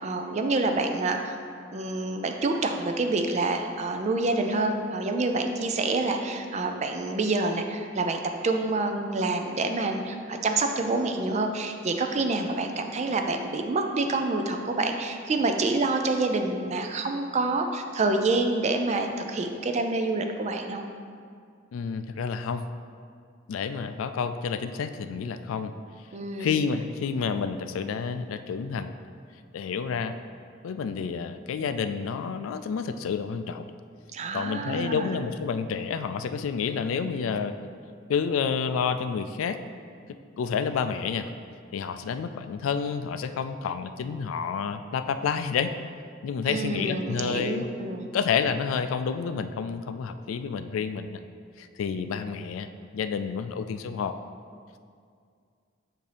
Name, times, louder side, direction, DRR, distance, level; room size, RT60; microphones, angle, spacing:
voice 1, 0.0-1.4 1.7-20.8 26.1-26.6 34.1-35.1 46.5-48.1, right 3 dB, 35° right, 5 dB, 0.4 m, -27 dB
voice 2, 21.7-22.6 23.5-25.7 26.4-28.9 29.5-30.2 30.6-33.7 34.3-37.5 38.1-39.6 40.4-41.3 41.7-45.7 46.2-47.7 48.1-51.2 51.6-52.7 52.9-54.1, left 6 dB, 85° left, 10 dB, 0.3 m, -29 dB
7.7 x 2.7 x 5.0 m, 2.2 s
head